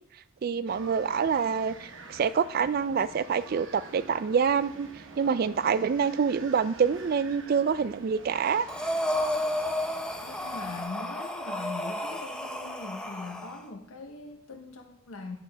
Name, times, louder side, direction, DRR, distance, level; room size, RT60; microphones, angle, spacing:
voice 1, 0.4-4.9 5.2-8.7, right 6 dB, 45° right, 15 dB, 0.3 m, -26 dB
sound 1, 0.7-10.8, right 3 dB, 65° right, 1.0 m, -48 dB
Breathing, 8.7-13.6, left 1 dB, 5° left, 0.6 m, -32 dB
voice 2, 10.2-15.4, left 3 dB, 80° left, 4 dB, 0.9 m, -41 dB
10.5 x 7.0 x 3.4 m, 0.77 s
head